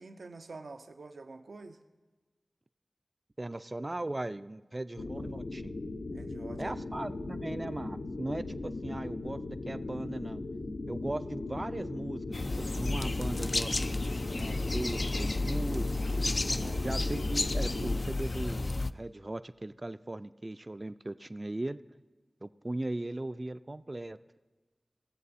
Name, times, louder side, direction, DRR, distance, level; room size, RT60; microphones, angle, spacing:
voice 1, 0.0-1.8 6.1-6.7 16.5-16.9, right 3 dB, 85° right, 7 dB, 0.6 m, -47 dB
voice 2, 3.4-5.8 6.6-10.4 10.9-12.2 12.6-13.7 14.4-15.9 16.8-21.8 22.4-24.2, right 1 dB, 35° right, 13 dB, 0.4 m, -38 dB
sound 1, 5.0-18.0, left 2 dB, 85° left, 0.8 m, -38 dB
sound 2, 12.3-18.9, left 2 dB, 50° left, 0.3 m, -32 dB
17.5 x 7.4 x 4.2 m, 1.3 s
wide cardioid pair, 55°, 0 cm